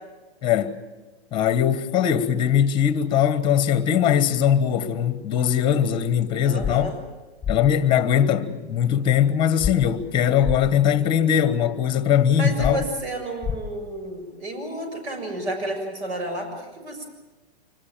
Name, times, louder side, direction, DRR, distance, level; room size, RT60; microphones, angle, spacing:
voice 1, 0.4-0.8 1.3-6.9 7.5-12.8, left 9 dB, 15° left, 1.2 m, -21 dB
voice 2, 6.4-7.0 12.4-17.1, right 1 dB, 80° right, 7.0 m, -31 dB
sound 1, 6.6-6.7 7.4-7.6 9.6-9.7 10.4-10.6 12.6-12.7 13.4-13.6, left 8 dB, ahead, 1.7 m, -25 dB
25.0 x 17.5 x 8.9 m
hypercardioid pair, 160°, 32 cm